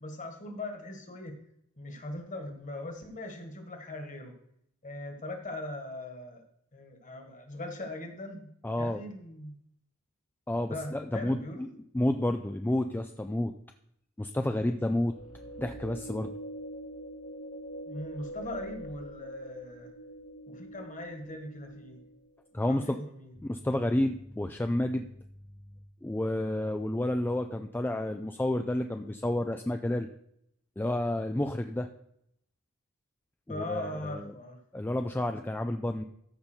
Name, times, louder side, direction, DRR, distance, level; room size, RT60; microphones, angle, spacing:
voice 1, 0.0-1.4 1.8-4.3 4.8-6.4 6.7-8.5 8.8-9.5 10.7-11.6 17.9-19.9 20.5-22.0 22.7-23.3 33.5-34.6, left 1 dB, 35° left, 4 dB, 1.7 m, -40 dB
voice 2, 8.6-9.0 10.5-11.4 11.9-13.5 14.2-15.1 15.6-16.3 22.5-23.0 23.4-25.1 26.0-30.1 30.8-31.9 33.5-34.3 34.7-36.0, left 1 dB, 10° left, 6 dB, 0.4 m, -30 dB
sound 1, 15.0-22.3, right 1 dB, 80° left, 2.6 m, -44 dB
14.0 x 5.5 x 4.5 m, 0.72 s
head